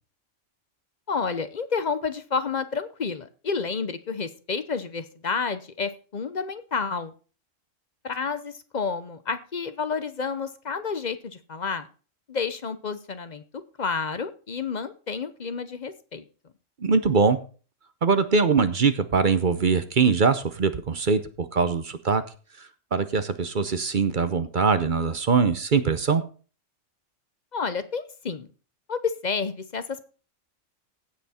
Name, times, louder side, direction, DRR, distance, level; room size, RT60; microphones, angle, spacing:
voice 1, 1.1-7.1 8.0-11.9 12.3-16.2 27.5-28.5 28.9-30.0, left 5 dB, 40° left, 12 dB, 0.7 m, -30 dB
voice 2, 16.8-17.4 18.0-22.2 22.9-26.2, right 5 dB, 45° right, 12 dB, 0.8 m, -22 dB
16.0 x 5.9 x 4.3 m, 0.37 s
omnidirectional pair, 1.3 m